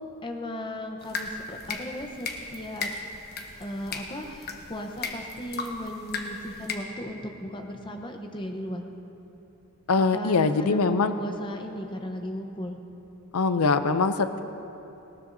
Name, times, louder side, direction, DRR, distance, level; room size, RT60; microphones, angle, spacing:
voice 1, 0.2-2.9 3.2-8.9 10.1-12.8, equal, 20° left, 4 dB, 0.9 m, -36 dB
sound 1, 1.0-6.7, left 4 dB, 45° left, 1.1 m, -36 dB
voice 2, 9.9-11.1 13.3-14.4, left 4 dB, 80° left, 10 dB, 0.5 m, -23 dB
19.5 x 17.0 x 2.7 m, 3.0 s
head